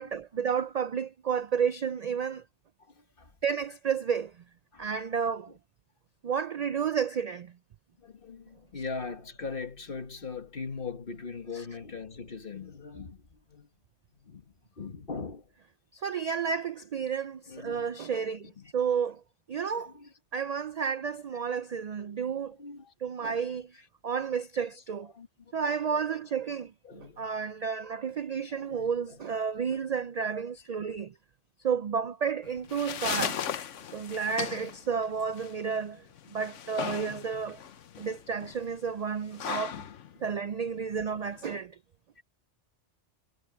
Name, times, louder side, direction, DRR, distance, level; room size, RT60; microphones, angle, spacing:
voice 1, 0.0-2.4 3.4-4.3 4.8-5.5 6.2-7.5 11.5-11.7 15.9-19.2 19.5-19.9 20.3-22.6 23.0-23.7 24.0-25.1 25.5-31.1 31.6-33.4 33.9-36.1 36.3-37.6 38.0-39.9 40.2-41.8, right 6 dB, 75° right, 0.3 m, -31 dB
voice 2, 2.8-3.3 4.7-4.9 8.0-13.7 14.1-15.5 17.5-17.9 18.3-18.7 19.9-20.1 22.5-22.9 23.2-23.3 25.1-25.5 26.8-27.4 28.5-29.2 33.3-33.4, left 4 dB, 50° left, 1.8 m, -41 dB
sound 1, 32.4-41.4, left 9 dB, 90° left, 1.2 m, -38 dB
omnidirectional pair, 1.2 m